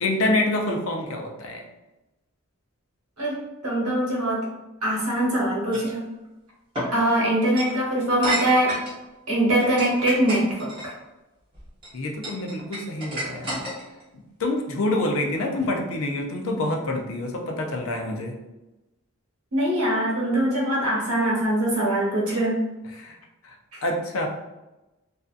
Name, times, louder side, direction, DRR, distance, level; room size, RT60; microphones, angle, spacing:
voice 1, 0.0-1.6 11.9-13.6 14.1-18.4 22.9-23.2 23.4-23.6 23.8-24.3, left 2 dB, 65° left, 2 dB, 0.5 m, -27 dB
voice 2, 3.2-4.4 4.8-6.0 6.9-8.7 9.3-10.9 15.6-15.7 19.5-22.6 23.7-23.8, right 1 dB, 80° right, -4 dB, 1.1 m, -23 dB
sound 1, 5.7-5.9 6.8-6.9 7.5-7.7 8.2-9.0 9.6-10.9 11.5-11.9 12.2-14.0, right 1 dB, 25° right, 0.9 m, -30 dB
2.6 x 2.3 x 2.4 m, 1.0 s
head